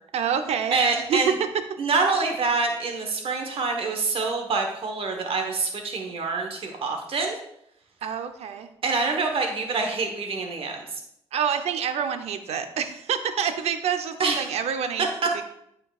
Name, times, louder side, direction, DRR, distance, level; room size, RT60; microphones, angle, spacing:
voice 1, 0.1-0.8 1.1-1.2 8.0-8.7 11.3-15.1 15.3-15.4, right 7 dB, 85° right, 8 dB, 0.7 m, -27 dB
voice 2, 0.7-1.3 1.8-7.4 8.8-10.8 14.2-14.5, right 4 dB, 60° right, 3 dB, 1.1 m, -26 dB
11.5 x 4.6 x 2.4 m, 0.76 s
cardioid pair, 85°, 11 cm